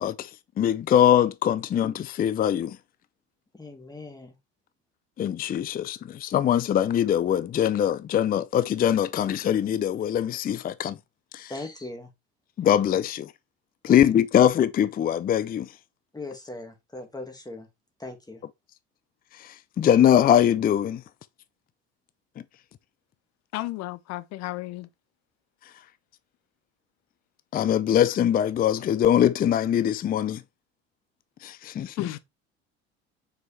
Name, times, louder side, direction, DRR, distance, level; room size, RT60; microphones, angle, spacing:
voice 1, 0.0-0.3 0.6-2.8 5.2-11.0 11.3-11.5 12.6-13.3 13.8-15.7 19.4-21.0 27.5-30.4 31.4-32.0, left 10 dB, 25° left, 0.5 m, -22 dB
voice 2, 3.5-4.3 11.5-12.1 13.9-14.0 16.1-17.7 18.0-18.4, left 2 dB, 10° left, 2.0 m, -39 dB
voice 3, 23.5-24.9 32.0-32.2, left 18 dB, 55° left, 0.8 m, -33 dB
6.1 x 4.9 x 3.3 m
hypercardioid pair, 65°, 33 cm